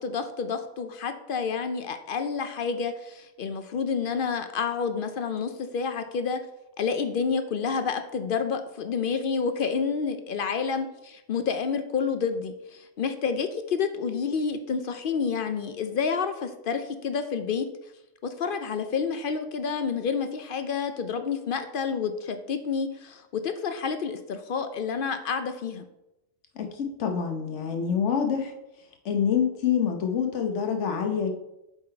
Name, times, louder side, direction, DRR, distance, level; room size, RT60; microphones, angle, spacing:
voice 1, 0.0-6.4 6.8-17.7 18.2-25.8, left 5 dB, 60° left, 8 dB, 0.6 m, -29 dB
voice 2, 26.5-28.5 29.0-31.3, left 7 dB, 75° left, 4 dB, 1.2 m, -26 dB
7.3 x 3.9 x 4.4 m, 0.89 s
omnidirectional pair, 1.2 m